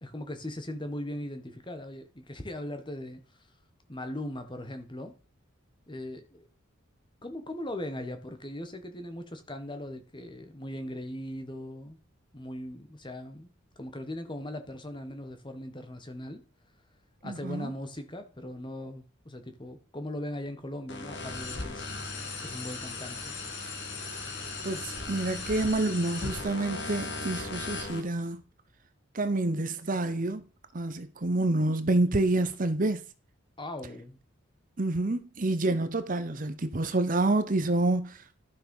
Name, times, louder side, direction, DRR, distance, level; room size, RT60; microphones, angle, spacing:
voice 1, 0.0-3.2 3.9-5.1 5.9-6.5 7.2-12.0 12.3-13.5 13.8-16.4 17.2-21.9 22.4-23.3 33.6-34.2, left 1 dB, 25° left, 1.4 m, -39 dB
voice 2, 17.2-17.7 24.6-28.4 29.1-30.5 30.7-33.0 34.8-38.4, right 2 dB, 40° right, 0.8 m, -28 dB
sound 1, 20.9-28.0, left 3 dB, 55° left, 2.3 m, -37 dB
12.0 x 6.5 x 5.4 m
head